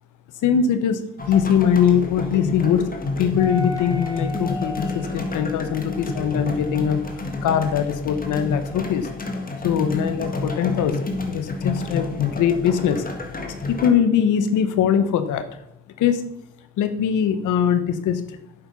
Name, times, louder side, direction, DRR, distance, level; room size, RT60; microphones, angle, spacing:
voice 1, 0.4-1.0 1.3-2.9 3.2-7.0 7.4-9.1 9.6-13.0 13.7-15.5 16.0-16.2 16.8-18.2, left 8 dB, 85° left, 10 dB, 1.2 m, -21 dB
sound 1, 1.2-13.9, left 2 dB, 30° left, 1.8 m, -29 dB
sound 2, 3.4-8.9 9.3-10.2, left 3 dB, 10° left, 2.4 m, -38 dB
8.8 x 7.5 x 5.3 m, 0.83 s
cardioid pair, 90°, 30 cm